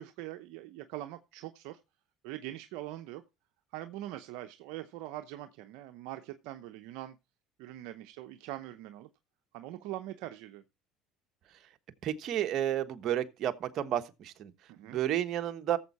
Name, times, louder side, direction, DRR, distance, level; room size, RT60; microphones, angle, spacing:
voice 1, 0.0-1.8 2.2-3.2 3.7-7.2 7.6-9.1 9.5-10.6 14.7-15.0, right 14 dB, 75° right, 0.7 m, -42 dB
voice 2, 12.0-14.5 14.8-15.8, right 11 dB, 55° right, 1.2 m, -31 dB
14.5 x 7.3 x 4.1 m
supercardioid pair, 95°, 0 cm